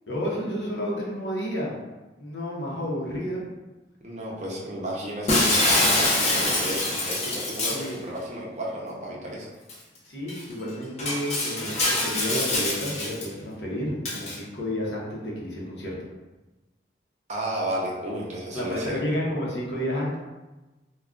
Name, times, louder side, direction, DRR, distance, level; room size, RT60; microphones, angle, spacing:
voice 1, 0.1-1.8 2.2-3.4 7.7-8.0 10.1-16.0 18.5-20.2, equal, 70° left, -4 dB, 0.8 m, -31 dB
voice 2, 4.0-9.5 17.3-19.0, right 1 dB, 40° right, -3 dB, 0.6 m, -33 dB
Shatter, 5.3-7.9 9.7-9.8 10.3-10.4 11.0-13.2 14.0-14.4, left 1 dB, 40° left, 0.7 m, -24 dB
2.3 x 2.2 x 3.6 m, 1.1 s
head